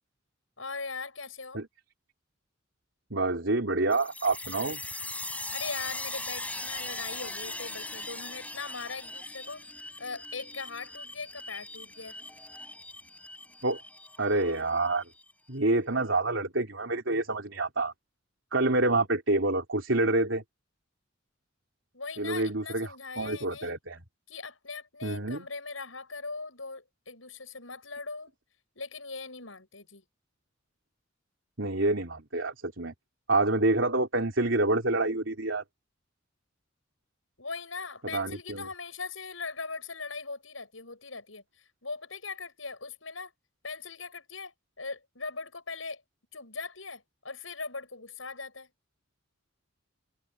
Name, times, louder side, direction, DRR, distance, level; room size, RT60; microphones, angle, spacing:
voice 1, 0.6-1.6 5.5-12.2 21.9-23.8 24.3-28.3 28.7-30.0 37.4-43.3 43.6-46.0 46.3-48.7, left 4 dB, 80° left, 7.8 m, -40 dB
voice 2, 3.1-4.8 13.6-13.8 14.2-15.0 15.5-17.9 18.5-20.4 22.2-24.0 25.0-25.5 31.6-32.9 33.3-35.6 38.1-38.7, right 2 dB, 70° right, 3.6 m, -27 dB
Crystal Magic, 3.9-15.3, left 2 dB, 5° left, 7.7 m, -40 dB
head